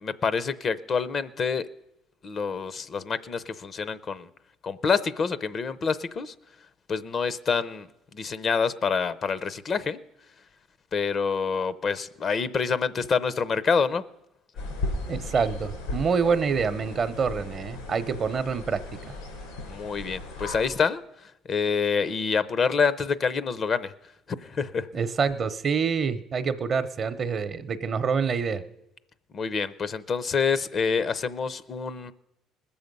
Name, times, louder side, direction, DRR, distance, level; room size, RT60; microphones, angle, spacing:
voice 1, 0.0-1.7 2.2-4.3 4.6-6.3 6.9-10.0 10.9-14.0 19.7-21.0 21.5-23.9 24.4-24.9 29.3-32.1, left 5 dB, 45° left, 16 dB, 0.6 m, -27 dB
sound 1, 14.6-20.7, left 2 dB, 85° left, 3.8 m, -36 dB
voice 2, 15.1-19.0 24.9-28.6, right 5 dB, 45° right, 12 dB, 0.7 m, -26 dB
20.0 x 7.1 x 5.3 m, 0.87 s
supercardioid pair, 75°, 0 cm